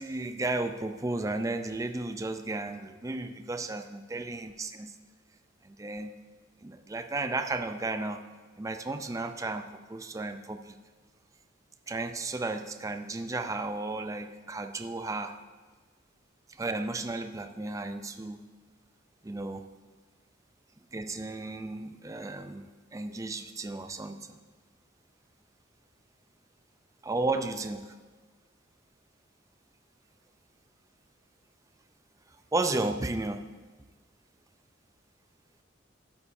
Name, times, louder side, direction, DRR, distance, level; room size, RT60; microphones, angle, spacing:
voice 1, 0.0-4.9 5.6-6.1 6.6-8.3 8.6-10.8 11.9-15.4 16.6-18.4 19.2-19.7 20.9-22.6 22.9-24.4 27.0-27.9 32.5-33.5, right 2 dB, 15° right, 8 dB, 0.4 m, -33 dB
13.5 x 8.5 x 2.6 m, 1.4 s
head